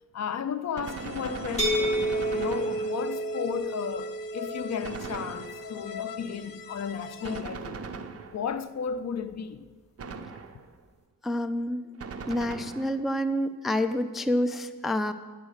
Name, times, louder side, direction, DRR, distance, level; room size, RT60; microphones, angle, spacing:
voice 1, 0.1-7.8 8.2-9.6, left 7 dB, 50° left, 0.6 m, -34 dB
Gunshot gunfire, 0.7-3.3 4.8-5.9 7.2-8.7 10.0-10.8 12.0-13.1, right 4 dB, 45° right, 0.8 m, -39 dB
sound 1, 0.8-7.4, left 9 dB, 75° left, 1.0 m, -42 dB
sound 2, 1.6-7.4, right 1 dB, 20° left, 1.9 m, -32 dB
voice 2, 11.2-11.8 12.3-15.1, left 1 dB, ahead, 0.4 m, -28 dB
10.0 x 8.3 x 6.4 m
cardioid pair, 100°, 34 cm